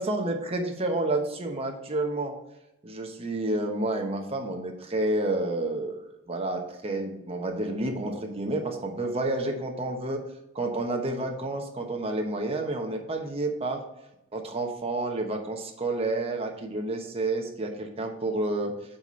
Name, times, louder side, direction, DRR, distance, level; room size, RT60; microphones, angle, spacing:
voice 1, 0.0-2.4 2.8-10.2 10.5-13.8 14.3-18.7, right 2 dB, 30° right, 3 dB, 1.0 m, -30 dB
7.8 x 4.2 x 4.4 m, 0.91 s
head